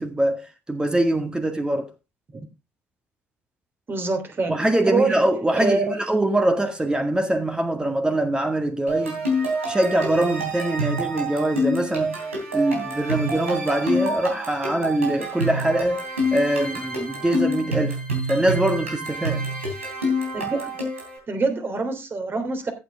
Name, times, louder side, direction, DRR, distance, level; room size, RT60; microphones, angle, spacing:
voice 1, 0.0-1.9 4.5-9.3 9.7-12.2 12.5-16.0 16.3-18.0 18.3-19.5, right 1 dB, 10° right, 1.8 m, -23 dB
voice 2, 3.9-4.5 4.9-5.2 5.5-5.9 20.3-20.8 21.3-22.7, right 3 dB, 30° right, 3.2 m, -25 dB
sound 1, 8.9-21.2, equal, 85° right, 3.4 m, -27 dB
14.0 x 8.2 x 3.5 m
figure-of-eight pair, 55°, 7 cm